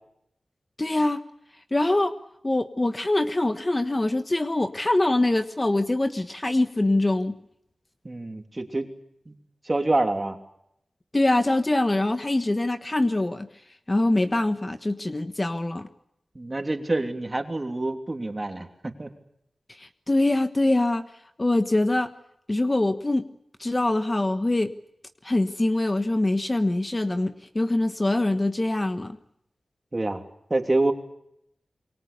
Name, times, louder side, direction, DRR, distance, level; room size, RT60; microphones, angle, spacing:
voice 1, 0.8-1.2 1.7-2.2 2.4-7.4 11.1-13.5 13.9-15.9 19.7-21.0 21.4-22.1 22.5-23.2 23.6-24.7 25.2-29.2, left 2 dB, 25° left, 8 dB, 1.3 m, -24 dB
voice 2, 8.0-8.9 9.3-9.4 9.7-10.4 16.3-19.1 29.9-30.2 30.5-30.9, right 2 dB, 30° right, 5 dB, 3.1 m, -26 dB
27.5 x 23.5 x 6.8 m, 0.77 s
wide cardioid pair, 100°, 0 cm